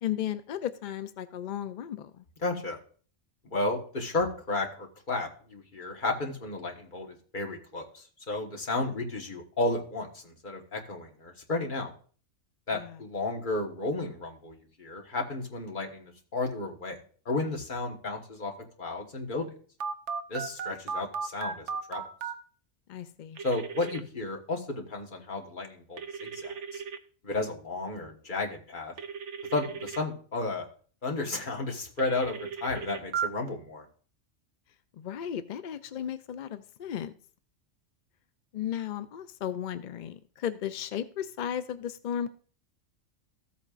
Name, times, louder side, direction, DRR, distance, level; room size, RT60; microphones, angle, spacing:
voice 1, 0.0-2.2 12.7-13.0 22.9-23.4 34.9-37.1 38.5-42.3, left 10 dB, 65° left, 11 dB, 0.4 m, -35 dB
voice 2, 2.4-2.8 3.5-11.9 12.7-17.0 17.2-18.5 18.8-19.5 20.3-22.0 23.4-26.8 27.2-28.9 29.5-30.7 31.0-33.8, left 2 dB, 40° left, 1 dB, 1.5 m, -33 dB
Telephone, 19.8-22.3 23.4-24.0 26.0-27.0 29.0-30.0 32.0-33.3, right 6 dB, 70° right, 1.1 m, -35 dB
14.5 x 8.4 x 2.5 m, 0.43 s
omnidirectional pair, 1.3 m